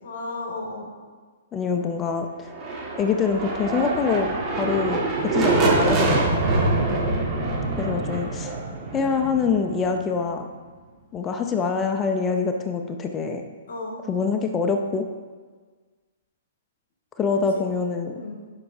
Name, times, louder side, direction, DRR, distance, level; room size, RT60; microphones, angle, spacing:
voice 1, 0.0-0.9 6.5-6.8 13.7-14.0 17.5-17.6 18.1-18.4, left 2 dB, 60° left, -2 dB, 1.9 m, -34 dB
voice 2, 1.5-2.5 3.0-4.3 4.6-6.2 7.8-8.5 8.9-10.5 11.1-13.4 14.1-15.1 17.2-18.2, left 5 dB, 20° left, 5 dB, 0.6 m, -25 dB
sound 1, 2.4-10.2, right 2 dB, 25° right, 1.7 m, -24 dB
9.6 x 5.7 x 2.7 m, 1.5 s
hypercardioid pair, 135°, 0 cm